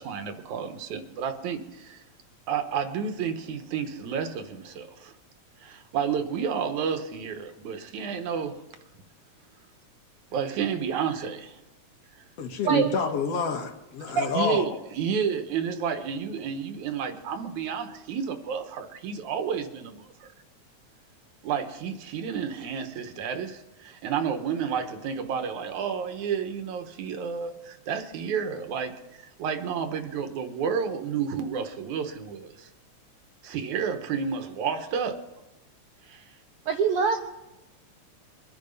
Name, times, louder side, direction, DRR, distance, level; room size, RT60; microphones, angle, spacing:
voice 1, 0.0-2.0 2.5-5.1 5.6-8.5 10.3-11.6 12.7-12.8 14.3-20.3 21.4-32.7 33.4-35.2 36.1-36.3, right 7 dB, 85° right, 7 dB, 2.6 m, -31 dB
voice 2, 12.4-14.8, left 5 dB, 60° left, 4 dB, 2.6 m, -28 dB
voice 3, 36.7-37.2, right 6 dB, 65° right, 4 dB, 1.5 m, -23 dB
22.5 x 10.5 x 5.4 m, 1.0 s
omnidirectional pair, 3.3 m